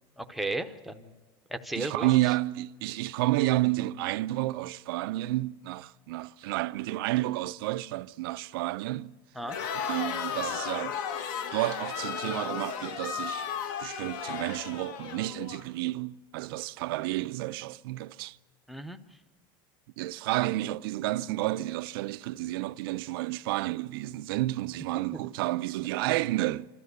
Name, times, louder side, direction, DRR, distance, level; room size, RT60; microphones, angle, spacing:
voice 1, 0.2-1.1 1.5-2.1 9.4-9.6 18.7-19.0, right 2 dB, ahead, 0.7 m, -34 dB
voice 2, 1.8-9.1 9.7-10.9 11.5-13.5 13.8-18.4 20.0-26.7, right 17 dB, 85° right, 0.5 m, -30 dB
Crowd, 9.4-15.6, left 7 dB, 65° left, 1.4 m, -35 dB
26.5 x 13.5 x 8.0 m
cardioid pair, 180°, 12 cm